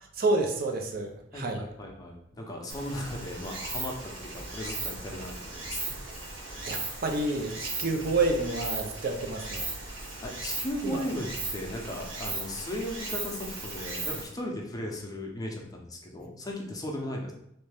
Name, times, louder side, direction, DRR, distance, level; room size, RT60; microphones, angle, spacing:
voice 1, 0.2-1.6 6.6-9.7 10.8-11.0, right 2 dB, 50° right, 4 dB, 0.4 m, -29 dB
voice 2, 1.3-6.0 9.9-17.3, left 1 dB, 20° left, 0 dB, 0.6 m, -37 dB
Stream, 2.7-14.2, right 3 dB, 75° right, 0.9 m, -37 dB
3.1 x 2.6 x 3.3 m, 0.75 s
head